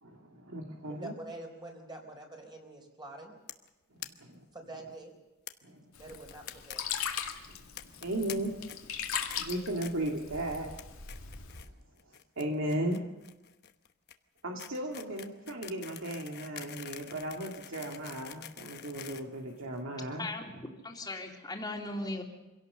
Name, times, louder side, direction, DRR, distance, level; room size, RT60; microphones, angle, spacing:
voice 1, 0.0-1.1 4.2-4.4 5.6-5.8 7.5-7.6 7.8-9.1 9.3-10.7 12.1-13.1 14.4-20.2, right 1 dB, 70° right, 1 dB, 2.2 m, -36 dB
voice 2, 0.9-3.4 4.5-5.1 6.0-6.9, right 2 dB, 20° right, 2 dB, 4.3 m, -46 dB
sound 1, 3.5-3.7 4.0-4.1 4.3-4.4 4.7-4.8 5.5-5.6 6.1-6.8 7.0-7.2 7.8-8.3 8.7-9.0 9.3-9.4 9.8-10.1 10.5-10.8 11.1-11.7 12.0-20.0, left 10 dB, 50° left, 1.1 m, -46 dB
Sink (filling or washing), 5.9-11.6, left 8 dB, 80° left, 2.2 m, -39 dB
voice 3, 20.2-22.2, left 2 dB, 20° left, 2 dB, 2.9 m, -38 dB
25.5 x 17.0 x 6.8 m, 1.1 s
head